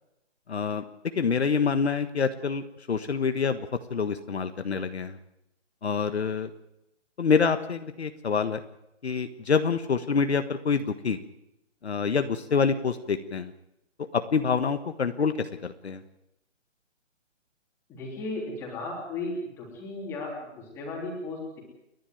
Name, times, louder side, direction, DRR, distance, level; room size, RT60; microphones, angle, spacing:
voice 1, 0.5-0.8 1.1-5.2 5.8-6.5 7.2-8.6 9.0-11.2 11.8-13.5 14.0-16.0, left 5 dB, 60° left, 9 dB, 1.5 m, -26 dB
voice 2, 17.9-21.6, left 2 dB, 5° left, -2 dB, 3.2 m, -35 dB
29.5 x 11.0 x 9.2 m, 0.87 s
hypercardioid pair, 180°, 37 cm